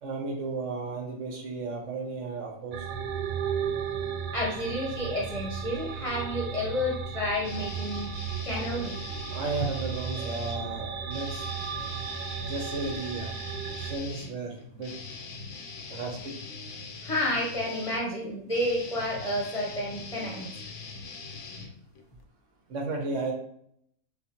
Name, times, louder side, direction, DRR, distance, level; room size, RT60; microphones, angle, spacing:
voice 1, 0.0-2.9 9.3-11.4 12.4-13.3 13.8-14.9 15.9-16.3 22.7-23.3, right 3 dB, 65° right, 1 dB, 1.1 m, -34 dB
sound 1, 2.7-14.0, right 7 dB, 90° right, 1.0 m, -35 dB
voice 2, 4.3-8.1 8.4-9.0 17.0-20.5, left 1 dB, 25° left, -4 dB, 1.0 m, -30 dB
sound 2, 7.4-10.6 11.1-22.2, left 4 dB, 65° left, 1.0 m, -42 dB
6.7 x 2.3 x 3.0 m, 0.68 s
omnidirectional pair, 1.4 m